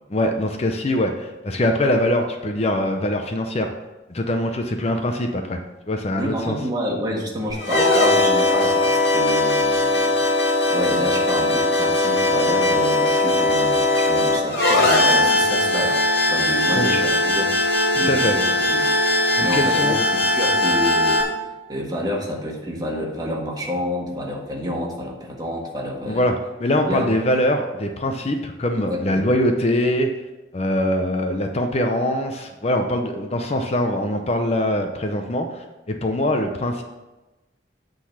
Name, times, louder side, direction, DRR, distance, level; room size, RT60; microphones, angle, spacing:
voice 1, 0.1-3.7 4.1-5.6 5.9-6.6 16.7-17.0 17.9-18.4 19.4-20.0 26.1-30.1 30.5-36.8, left 1 dB, 35° left, 4 dB, 0.6 m, -23 dB
voice 2, 6.2-10.2 10.7-15.9 16.3-17.5 17.9-18.9 19.4-21.2 21.7-26.3 26.9-27.1 28.8-29.3, equal, 20° right, -1 dB, 1.6 m, -28 dB
sound 1, 7.5-21.2, left 2 dB, 65° left, 1.9 m, -19 dB
8.9 x 4.0 x 7.1 m, 1.1 s
head